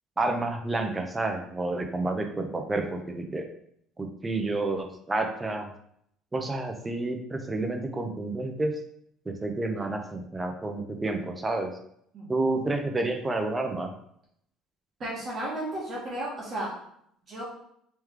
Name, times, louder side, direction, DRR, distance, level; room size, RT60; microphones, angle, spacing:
voice 1, 0.2-3.4 4.0-5.7 6.3-8.7 9.3-11.7 12.3-13.9, right 2 dB, 15° right, 4 dB, 0.5 m, -29 dB
voice 2, 15.0-16.7 17.3-17.4, right 1 dB, 30° right, -4 dB, 1.1 m, -33 dB
3.1 x 3.1 x 3.5 m, 0.71 s
cardioid pair, 150°, 0 cm